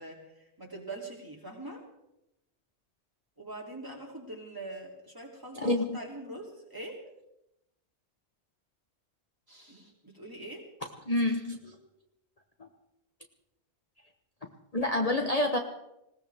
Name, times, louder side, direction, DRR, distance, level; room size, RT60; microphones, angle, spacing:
voice 1, 0.0-1.8 3.4-7.0 9.5-10.6 14.9-15.1, right 2 dB, 20° right, -2 dB, 3.1 m, -43 dB
voice 2, 5.5-6.0 11.1-11.8 14.7-15.6, left 1 dB, 35° left, 2 dB, 1.1 m, -28 dB
20.0 x 18.0 x 3.5 m, 0.86 s
omnidirectional pair, 1.1 m